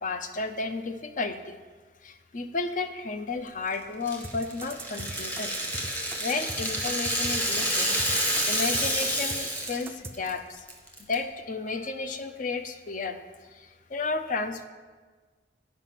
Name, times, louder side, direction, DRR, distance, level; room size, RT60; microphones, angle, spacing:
voice 1, 0.0-1.6 2.0-5.6 6.2-7.9 8.5-10.6 11.1-13.2 13.5-14.7, left 3 dB, 45° left, 7 dB, 0.5 m, -32 dB
Rattle (instrument), 4.1-9.9 10.1-10.3 10.7-11.1, equal, 10° left, 1.0 m, -29 dB
sound 1, 4.2-10.1, right 3 dB, 15° right, 0.4 m, -39 dB
8.9 x 4.9 x 5.8 m, 1.4 s
head